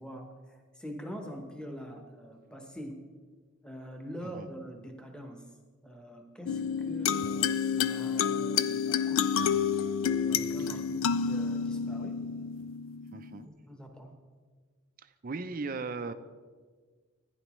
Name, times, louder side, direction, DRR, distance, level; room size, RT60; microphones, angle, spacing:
voice 1, 0.0-3.1 3.6-5.5 5.8-9.3 10.2-12.3 13.7-14.1, equal, 5° left, 3 dB, 1.0 m, -44 dB
sound 1, 6.5-13.4, left 7 dB, 65° left, 0.4 m, -29 dB
voice 2, 13.1-13.5 15.0-16.1, right 4 dB, 40° right, 10 dB, 0.5 m, -37 dB
15.0 x 10.0 x 3.1 m, 1.5 s
head